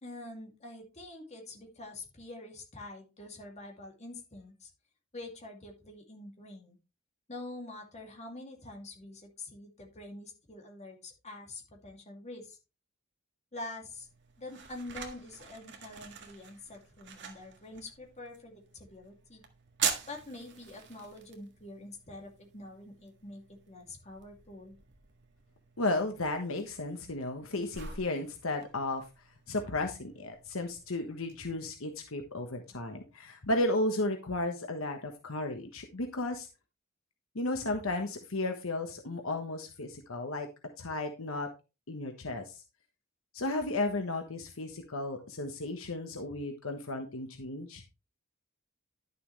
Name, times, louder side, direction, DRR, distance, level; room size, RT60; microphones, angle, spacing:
voice 1, 0.0-4.7 5.1-6.8 7.3-12.6 13.5-14.1 14.4-19.4 20.1-24.8, left 2 dB, 35° left, 1 dB, 2.5 m, -46 dB
sound 1, 13.8-31.4, right 7 dB, 55° right, 1.7 m, -44 dB
voice 2, 25.8-29.0 29.5-36.5 37.3-40.5 40.8-41.5 41.9-42.6 43.3-47.8, left 2 dB, 70° left, 5 dB, 1.2 m, -34 dB
11.0 x 6.8 x 3.2 m, 0.29 s
head